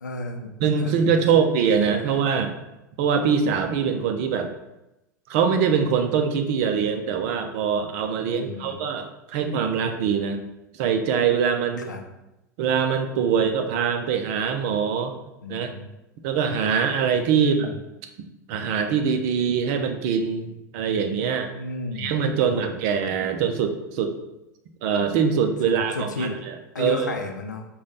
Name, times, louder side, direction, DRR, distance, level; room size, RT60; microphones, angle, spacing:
voice 1, 0.0-0.5 0.8-1.4 8.3-8.8 11.9-12.0 15.4-15.9 17.3-17.7 21.5-22.1 22.4-22.8 25.6-26.4 26.7-27.6, left 3 dB, 85° left, 4 dB, 0.5 m, -33 dB
voice 2, 0.6-2.5 3.0-4.5 5.3-10.4 10.8-11.9 12.6-15.1 15.5-15.7 16.2-17.7 18.5-21.5 22.0-24.2 24.8-27.2, right 6 dB, 55° right, 6 dB, 0.6 m, -23 dB
5.1 x 2.3 x 3.9 m, 0.94 s
figure-of-eight pair, 85°, 10 cm